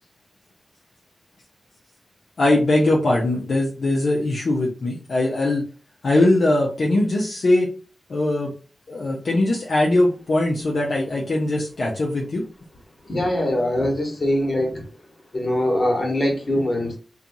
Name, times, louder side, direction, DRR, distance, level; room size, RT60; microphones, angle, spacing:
voice 1, 2.4-5.6 6.0-7.7 8.1-8.5 8.9-12.4, left 2 dB, 70° left, -3 dB, 0.5 m, -21 dB
voice 2, 13.0-14.8 15.3-17.0, left 1 dB, 50° left, 1 dB, 1.2 m, -22 dB
2.5 x 2.3 x 2.7 m, 0.36 s
cardioid pair, 45°, 0 cm